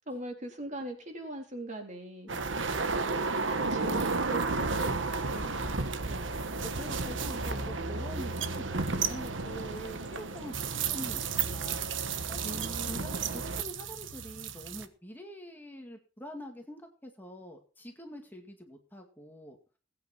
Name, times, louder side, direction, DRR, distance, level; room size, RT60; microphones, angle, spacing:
voice 1, 0.1-2.3 2.9-3.4 3.7-6.6 12.4-13.0, right 1 dB, 40° right, 2 dB, 3.9 m, -42 dB
voice 2, 2.3-2.7 5.1-5.9 6.6-12.6 12.9-19.6, equal, 10° left, 2 dB, 2.1 m, -45 dB
sound 1, 2.3-14.9, right 4 dB, 80° right, 1.3 m, -32 dB
21.0 x 9.1 x 4.4 m, 0.38 s
head